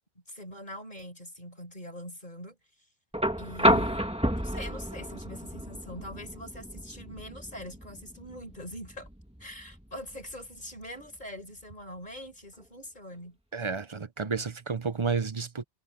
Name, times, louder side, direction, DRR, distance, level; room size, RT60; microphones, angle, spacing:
voice 1, 0.3-2.6 3.4-4.0 4.3-9.1 9.4-13.4, equal, 45° left, 5.5 m, -43 dB
sound 1, 3.1-11.2 12.6-12.7, equal, 5° right, 1.8 m, -31 dB
voice 2, 13.5-15.6, right 5 dB, 30° right, 0.7 m, -31 dB
omnidirectional pair, 1.1 m